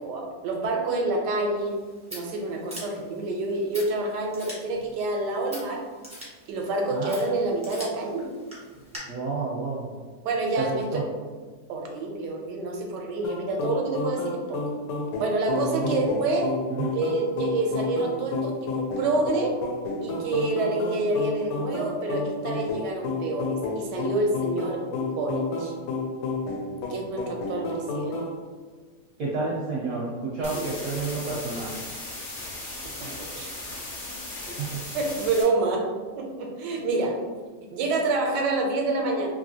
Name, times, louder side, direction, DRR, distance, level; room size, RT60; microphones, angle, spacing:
voice 1, 0.0-1.8 2.1-5.8 6.5-8.3 10.2-11.0 11.7-14.6 15.2-16.5 16.9-19.6 20.0-25.7 26.9-28.2 30.5-30.6 32.8-33.5 34.9-35.9 36.2-37.2 37.7-39.3, right 2 dB, 85° right, 1 dB, 1.2 m, -28 dB
Scissors, 1.6-9.0, equal, 10° right, 0.4 m, -45 dB
voice 2, 9.1-9.9 10.6-11.0 15.6-16.1 16.7-16.9 29.2-31.8 34.5-34.8, right 3 dB, 70° right, -4 dB, 0.9 m, -30 dB
sound 1, 13.2-28.3, left 3 dB, 85° left, 1.2 m, -31 dB
sound 2, 30.4-35.4, left 2 dB, 50° left, 0.6 m, -37 dB
3.0 x 2.6 x 2.7 m, 1.5 s
omnidirectional pair, 1.8 m